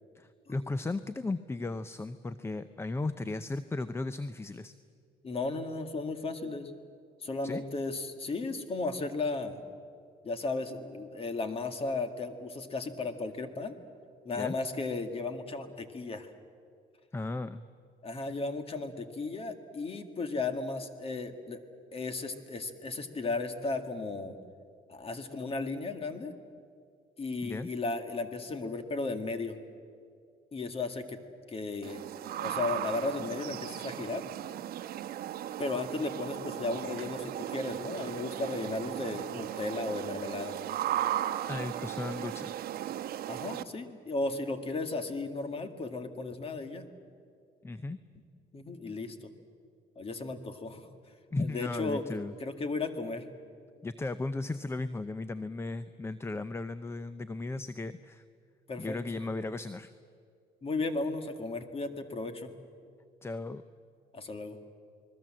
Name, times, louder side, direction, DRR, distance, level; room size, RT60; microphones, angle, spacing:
voice 1, 0.1-4.7 7.4-7.6 14.4-14.6 17.1-17.6 27.4-27.7 41.4-42.5 47.6-48.0 51.3-52.3 53.8-58.2 58.8-59.9 63.2-63.6, left 2 dB, 15° left, 13 dB, 0.6 m, -36 dB
voice 2, 5.2-6.7 7.2-9.6 10.2-13.8 14.3-16.3 18.0-21.6 21.9-24.4 24.9-26.4 27.2-29.6 30.5-31.2 31.5-32.0 32.3-34.2 35.6-40.6 43.3-46.9 48.5-49.3 50.0-50.9 51.4-52.0 52.4-53.2 58.7-59.0 60.6-62.5 64.1-64.6, left 3 dB, 35° left, 8 dB, 2.0 m, -35 dB
sound 1, 31.8-43.6, right 12 dB, 65° right, 1.0 m, -36 dB
29.0 x 20.5 x 7.6 m, 2.3 s
cardioid pair, 110°, 17 cm